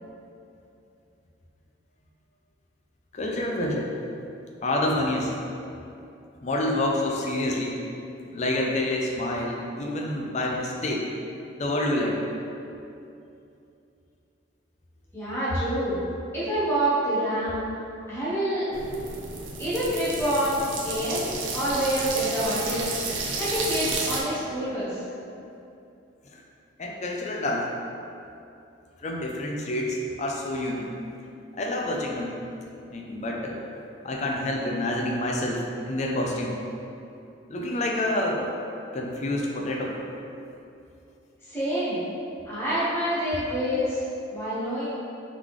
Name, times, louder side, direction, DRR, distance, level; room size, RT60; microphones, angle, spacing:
voice 1, 3.1-3.9 4.6-5.3 6.4-7.8 8.3-11.1 11.6-12.2 26.3-26.4 26.8-27.7 29.0-30.9 31.5-32.4 32.9-33.6 34.0-36.6 37.5-38.5 38.9-40.0, left 1 dB, 35° left, -1 dB, 0.4 m, -28 dB
voice 2, 15.1-16.0 16.3-17.6 18.1-18.7 19.6-21.2 21.5-25.0 41.5-42.0 42.5-44.0 44.3-44.9, equal, 10° left, -10 dB, 1.1 m, -27 dB
sound 1, 18.7-24.2, right 3 dB, 75° right, 0.6 m, -32 dB
3.7 x 3.7 x 3.1 m, 2.7 s
head